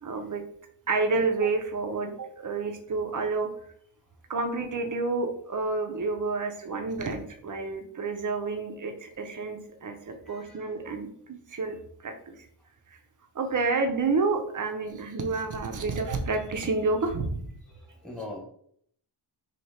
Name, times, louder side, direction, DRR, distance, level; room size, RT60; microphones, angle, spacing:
voice 1, 0.0-0.4 0.9-3.5 4.3-12.3 13.3-17.5, right 3 dB, 40° right, 5 dB, 0.6 m, -29 dB
voice 2, 10.2-10.7 17.7-18.4, left 2 dB, ahead, -2 dB, 1.2 m, -41 dB
3.1 x 2.9 x 4.2 m, 0.66 s
wide cardioid pair, 105°, 49 cm